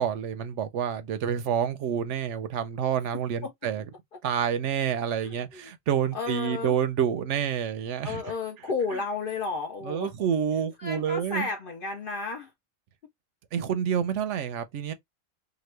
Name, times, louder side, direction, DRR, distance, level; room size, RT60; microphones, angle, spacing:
voice 1, 0.0-3.8 4.2-8.2 9.8-11.5 13.5-14.9, right 8 dB, 70° right, 0.8 m, -28 dB
voice 2, 6.1-6.8 8.0-10.1 10.8-12.5 13.6-13.7, left 4 dB, 60° left, 0.6 m, -32 dB
2.9 x 2.2 x 3.1 m
omnidirectional pair, 1.4 m